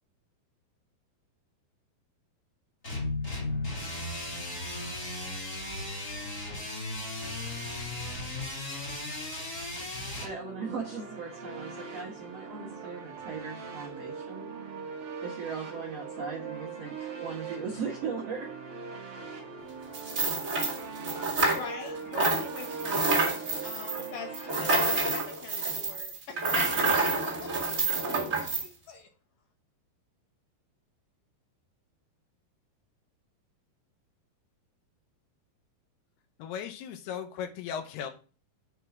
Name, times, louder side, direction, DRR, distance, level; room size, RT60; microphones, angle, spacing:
sound 1, 2.8-10.3, left 2 dB, 25° left, 1.8 m, -36 dB
voice 1, 10.2-14.5 15.2-18.5, right 5 dB, 60° right, -3 dB, 1.7 m, -38 dB
sound 2, 10.2-24.9, right 5 dB, 75° right, 1.2 m, -41 dB
sound 3, 19.9-21.9 22.1-28.7, right 3 dB, 30° right, 1.4 m, -28 dB
voice 2, 21.1-29.1, left 5 dB, 65° left, 4 dB, 2.4 m, -43 dB
voice 3, 36.4-38.1, left 8 dB, 80° left, 7 dB, 2.9 m, -37 dB
7.6 x 4.6 x 5.9 m, 0.37 s
omnidirectional pair, 4.6 m